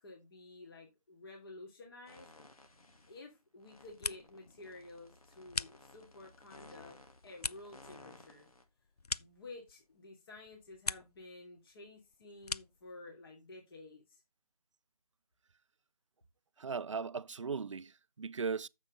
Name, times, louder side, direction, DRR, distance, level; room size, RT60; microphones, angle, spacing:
voice 1, 0.0-2.3 3.1-7.0 7.2-8.5 9.2-14.2, left 2 dB, 40° left, 2.8 m, -52 dB
sound 1, 2.1-3.2 3.6-8.6, left 2 dB, 70° left, 2.3 m, -58 dB
sound 2, 3.7-4.5 4.8-6.3 6.7-10.0 10.3-11.3 11.6-12.9, left 4 dB, 90° left, 0.5 m, -42 dB
voice 2, 16.6-18.7, right 5 dB, 55° right, 0.5 m, -38 dB
9.4 x 7.2 x 4.0 m
figure-of-eight pair, 155°, 19 cm